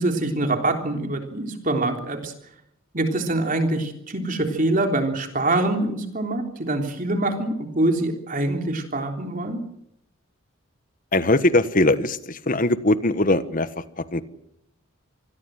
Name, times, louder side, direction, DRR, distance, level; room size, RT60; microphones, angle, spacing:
voice 1, 0.0-2.3 2.9-9.6, right 2 dB, 40° right, 4 dB, 3.6 m, -24 dB
voice 2, 11.1-13.7 14.0-14.2, left 2 dB, 40° left, 13 dB, 1.4 m, -21 dB
27.5 x 20.0 x 7.8 m, 0.74 s
head